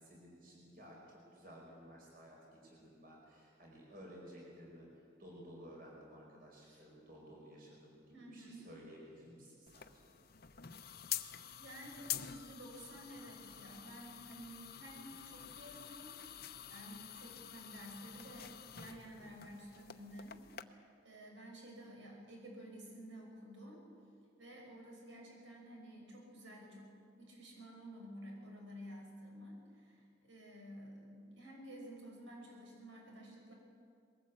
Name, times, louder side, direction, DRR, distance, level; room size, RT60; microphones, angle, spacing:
voice 1, 0.0-10.1, equal, 50° right, -2 dB, 5.2 m, -55 dB
voice 2, 8.1-8.7 9.7-9.8 11.6-16.2 16.7-23.8 24.4-26.9 27.2-33.5, equal, 75° right, 0 dB, 5.8 m, -52 dB
sound 1, 9.7-20.6, left 11 dB, 50° left, 0.8 m, -48 dB
21.5 x 18.5 x 8.4 m, 2.3 s
head